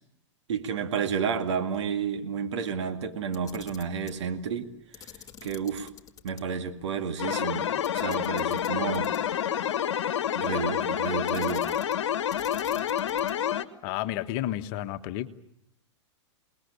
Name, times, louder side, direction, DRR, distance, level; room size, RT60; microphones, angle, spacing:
voice 1, 0.5-4.7 5.0-5.1 5.4-5.9 6.2-7.7 7.9-9.1 10.3-11.8, right 6 dB, 65° right, 7 dB, 2.3 m, -31 dB
Camera, 3.2-4.2 4.9-6.4 6.8-6.9 7.8-9.4 11.3-12.0 12.3-13.5, left 8 dB, 20° left, 2.1 m, -48 dB
sound 1, 7.2-13.7, left 10 dB, 70° left, 1.4 m, -28 dB
voice 2, 13.8-15.3, left 13 dB, 45° left, 9 dB, 1.5 m, -31 dB
28.0 x 20.0 x 8.6 m, 0.79 s
hypercardioid pair, 110°, 16 cm